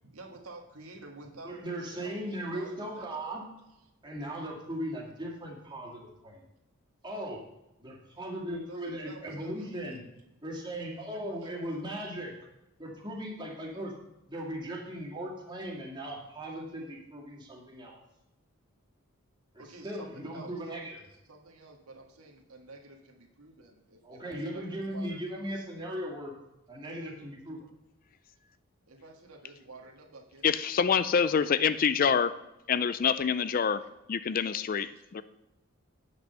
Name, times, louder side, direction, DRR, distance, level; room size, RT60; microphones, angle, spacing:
voice 1, 0.0-3.3 8.6-9.7 10.9-11.8 19.6-20.6 21.1-25.2 28.8-30.5 30.9-31.3, right 2 dB, 85° right, 1 dB, 1.7 m, -50 dB
voice 2, 1.4-3.4 4.0-6.4 7.0-7.4 7.8-10.0 10.4-12.4 12.8-13.9 14.3-18.0 19.5-21.0 24.0-26.3 26.7-27.7, right 1 dB, 20° right, -2 dB, 2.1 m, -38 dB
voice 3, 30.4-32.4 32.7-35.2, left 6 dB, 40° left, 14 dB, 0.3 m, -26 dB
8.7 x 6.2 x 6.8 m, 0.92 s
head